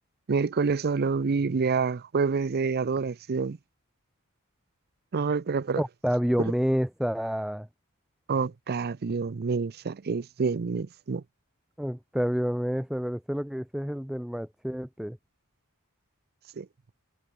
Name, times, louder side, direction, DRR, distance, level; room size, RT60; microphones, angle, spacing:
voice 1, 0.3-3.6 5.1-5.8 8.3-11.2 16.6-16.7, right 5 dB, 45° right, 0.5 m, -27 dB
voice 2, 5.7-7.7 11.8-15.2, equal, ahead, 0.6 m, -29 dB
head